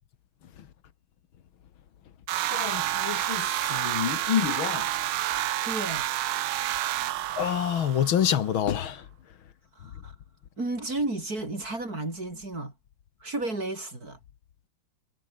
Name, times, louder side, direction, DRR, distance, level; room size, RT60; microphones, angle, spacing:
sound 1, 2.3-8.4, right 13 dB, 85° right, 1.7 m, -29 dB
voice 1, 2.5-4.9 7.4-9.0, left 9 dB, 80° left, 2.2 m, -27 dB
voice 2, 5.6-6.1 9.8-10.1 10.6-12.7 13.2-14.2, right 2 dB, 45° right, 6.5 m, -32 dB
omnidirectional pair, 2.2 m